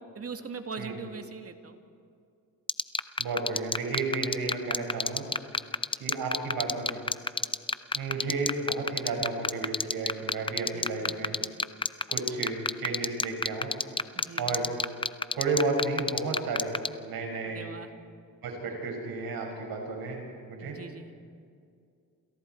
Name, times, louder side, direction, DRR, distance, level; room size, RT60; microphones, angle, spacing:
voice 1, 0.1-1.8 10.7-11.1 14.1-14.6 17.4-17.9 18.7-18.8 20.6-21.1, right 5 dB, 40° right, 6 dB, 2.3 m, -41 dB
sound 1, 2.7-16.9, left 3 dB, 15° left, 0.7 m, -26 dB
voice 2, 3.2-5.2 6.0-7.0 7.9-11.3 12.1-13.7 14.4-14.7 15.3-16.7 17.0-17.6 18.4-20.2 20.5-20.8, right 3 dB, 80° right, 1 dB, 6.5 m, -32 dB
29.0 x 28.0 x 4.7 m, 2.4 s
cardioid pair, 85°, 35 cm